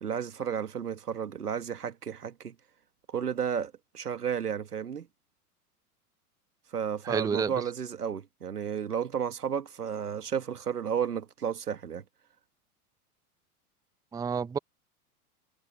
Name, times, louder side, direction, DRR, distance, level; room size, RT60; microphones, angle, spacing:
voice 1, 0.0-2.6 3.1-5.1 6.7-12.0, right 8 dB, 85° right, 1.7 m, -32 dB
voice 2, 7.0-7.5 14.1-14.6, right 6 dB, 10° right, 0.7 m, -29 dB
hypercardioid pair, 100°, 45 cm